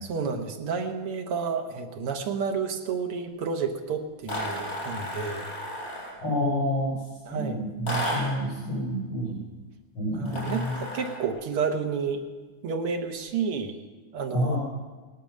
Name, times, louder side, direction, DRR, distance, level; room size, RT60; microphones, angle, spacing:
voice 1, 0.0-5.5 7.3-7.6 10.1-12.2 12.6-13.8 14.1-14.6, right 5 dB, 90° right, 5 dB, 2.3 m, -30 dB
sound 1, 4.3-6.2 7.9-8.5 10.3-11.3, equal, 40° left, 5.7 m, -33 dB
voice 2, 6.2-7.0 7.3-9.4 10.0-10.8 14.3-14.6, equal, 75° left, -3 dB, 3.8 m, -28 dB
17.5 x 11.0 x 6.5 m, 1.3 s
omnidirectional pair, 2.4 m